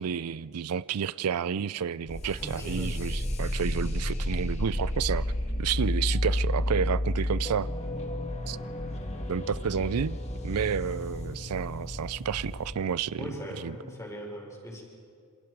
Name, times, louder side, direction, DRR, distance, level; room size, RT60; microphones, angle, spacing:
voice 1, 0.0-5.3 5.6-7.7 8.5-8.6 9.3-10.2 10.4-13.3 13.6-13.7, right 7 dB, 90° right, 0.5 m, -30 dB
sound 1, 2.1-12.7, left 1 dB, 30° left, 1.9 m, -31 dB
voice 2, 2.2-3.0 13.2-14.8, equal, 15° left, 4.3 m, -40 dB
27.5 x 26.5 x 4.7 m
head